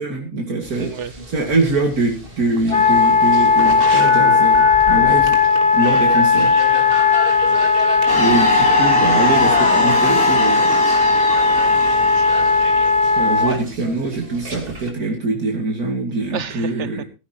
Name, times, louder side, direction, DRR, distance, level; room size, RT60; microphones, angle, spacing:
voice 1, 0.0-5.4 5.7-6.5 8.2-10.8 13.2-17.0, right 2 dB, 75° right, 1 dB, 3.0 m, -23 dB
sound 1, 0.6-14.9, right 2 dB, 35° right, 2.7 m, -32 dB
voice 2, 0.7-1.1 7.5-7.9 11.8-12.8 16.3-16.9, right 7 dB, 55° right, 15 dB, 1.2 m, -33 dB
Wind instrument woodwind instrument, 2.7-13.5, left 4 dB, 40° left, 1.8 m, -16 dB
sound 2, 8.1-12.7, left 3 dB, 70° left, 3.5 m, -24 dB
16.5 x 15.0 x 2.9 m, 0.31 s
omnidirectional pair, 1.6 m